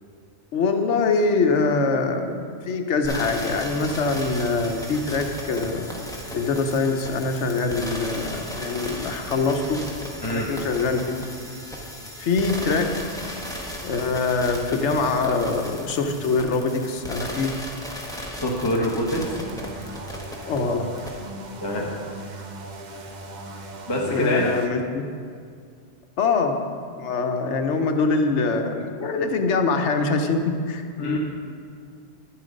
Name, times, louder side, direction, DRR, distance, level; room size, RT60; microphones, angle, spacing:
voice 1, 0.5-5.9 6.3-9.8 10.3-11.2 12.2-13.3 13.8-17.5 20.5-20.9 24.1-25.0 26.2-31.2, left 4 dB, 80° left, 5 dB, 1.1 m, -24 dB
sound 1, 3.0-20.6 21.0-21.1, equal, 5° left, 1.2 m, -35 dB
voice 2, 18.3-19.4 21.6-21.9 23.9-24.5 31.0-31.2, equal, 20° left, -2 dB, 1.0 m, -25 dB
sound 2, 19.2-24.7, right 2 dB, 45° right, 0.8 m, -38 dB
10.5 x 7.3 x 5.2 m, 2.2 s
omnidirectional pair, 1.2 m